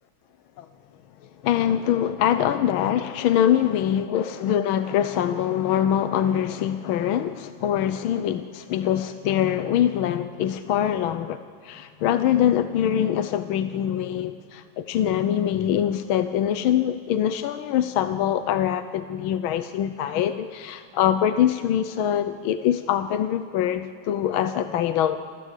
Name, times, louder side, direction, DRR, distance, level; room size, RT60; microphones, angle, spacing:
voice 1, 1.4-25.2, left 10 dB, 80° left, 10 dB, 1.5 m, -24 dB
28.5 x 14.5 x 8.2 m, 2.3 s
omnidirectional pair, 2.2 m